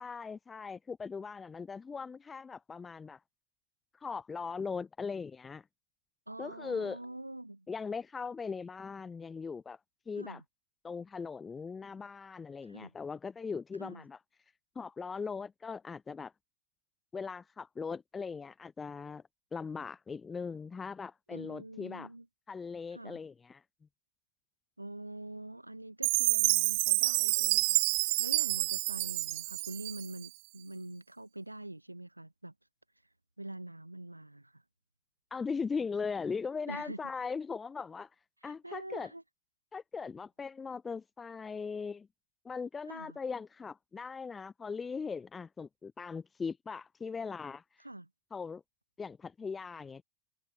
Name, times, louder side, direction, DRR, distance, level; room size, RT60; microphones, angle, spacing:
voice 1, 0.0-3.2 3.9-5.6 6.4-7.0 7.7-9.8 10.1-10.4 10.8-14.2 14.7-16.3 17.1-19.2 19.5-22.1 22.5-23.6 35.3-38.1 38.4-39.1 39.7-42.1 42.4-47.6 48.3-48.6 49.0-50.0, left 5 dB, 15° left, 2.8 m, -39 dB
voice 2, 6.3-7.7 10.2-10.4 12.6-12.9 13.8-14.0 21.3-22.3 22.9-23.2 24.8-32.5 33.4-34.6 36.7-37.1 38.4-39.2 42.9-43.2 47.8-48.1, right 1 dB, 85° right, 3.3 m, -45 dB
Chime, 26.0-30.3, right 28 dB, 45° right, 0.9 m, -28 dB
figure-of-eight pair, 90°, 0 cm